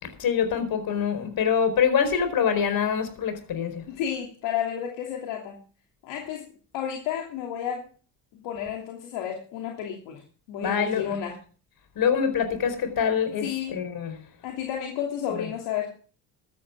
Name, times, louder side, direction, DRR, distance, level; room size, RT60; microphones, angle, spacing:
voice 1, 0.0-3.8 10.6-11.2 11.9-14.2 15.3-15.5, left 7 dB, 55° left, 4.7 m, -25 dB
voice 2, 3.9-5.6 6.0-6.5 6.7-7.9 8.3-10.2 10.5-11.4 13.4-13.8 14.4-16.0, left 9 dB, 80° left, 3.0 m, -31 dB
16.0 x 13.5 x 3.7 m
supercardioid pair, 95°, 42 cm